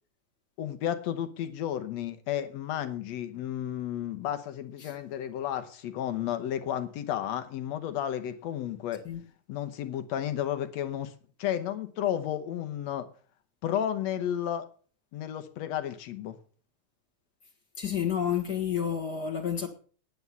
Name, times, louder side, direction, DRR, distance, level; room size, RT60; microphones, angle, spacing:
voice 1, 0.6-9.0 9.5-11.1 11.4-13.1 13.6-14.7 15.1-16.4, left 10 dB, 70° left, 2.1 m, -32 dB
voice 2, 17.8-19.7, left 8 dB, 40° left, 1.9 m, -30 dB
9.6 x 9.4 x 6.9 m
omnidirectional pair, 3.3 m